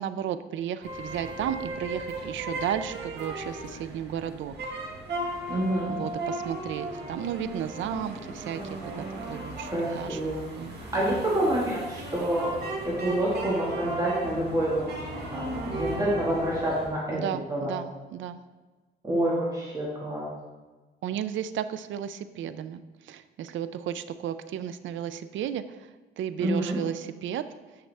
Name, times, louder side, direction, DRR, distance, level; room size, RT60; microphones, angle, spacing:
voice 1, 0.0-4.5 5.9-10.8 17.1-18.4 21.0-25.9 26.2-27.5, right 9 dB, 90° right, 12 dB, 0.4 m, -34 dB
sound 1, 0.8-16.9, right 2 dB, 60° right, 1.6 m, -36 dB
voice 2, 5.5-6.0 9.7-10.4 10.9-14.9 15.3-17.2 17.5-17.7 19.0-20.2 26.4-26.8, right 1 dB, 20° right, -6 dB, 1.8 m, -27 dB
8.8 x 5.4 x 3.4 m, 1.3 s
wide cardioid pair, 160°, 19 cm